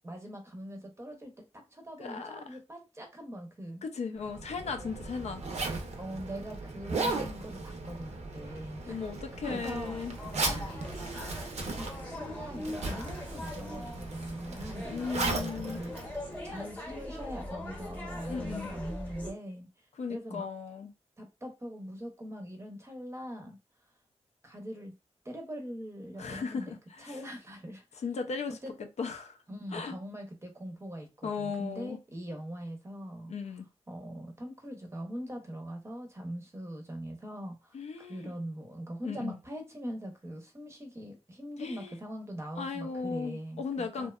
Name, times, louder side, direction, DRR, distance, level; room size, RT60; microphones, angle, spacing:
voice 1, 0.0-3.8 6.0-9.0 9.5-9.9 11.1-16.1 16.4-19.7 20.1-20.5 21.2-23.6 24.4-24.9 25.2-28.0 28.5-28.7 29.5-33.3 33.9-37.8 38.1-44.1, equal, 25° right, 0.6 m, -42 dB
voice 2, 2.0-2.6 3.8-5.4 8.9-10.2 10.4-10.7 14.9-15.8 18.3-18.7 20.0-20.9 26.2-27.2 28.0-28.6 29.0-29.4 29.7-30.0 31.2-32.0 33.3-33.7 37.7-38.3 39.0-39.4 41.6-42.0 42.6-44.1, left 5 dB, 70° left, 0.4 m, -36 dB
Zipper (clothing), 4.2-16.9, right 3 dB, 70° right, 0.5 m, -37 dB
sound 1, 9.7-19.3, left 1 dB, 15° left, 0.8 m, -42 dB
2.7 x 2.1 x 2.3 m
wide cardioid pair, 110°, 12 cm